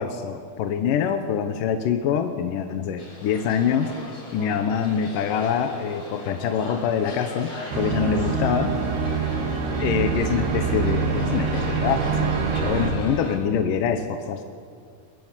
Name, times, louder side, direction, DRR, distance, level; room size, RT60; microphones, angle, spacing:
voice 1, 0.0-3.9 4.3-8.8 9.8-14.4, left 7 dB, 70° left, 7 dB, 2.3 m, -25 dB
sound 1, 3.0-13.4, left 2 dB, 40° left, 6.1 m, -39 dB
sound 2, 7.7-12.9, right 5 dB, 80° right, 4.0 m, -25 dB
23.5 x 22.0 x 7.4 m, 2.2 s
omnidirectional pair, 4.6 m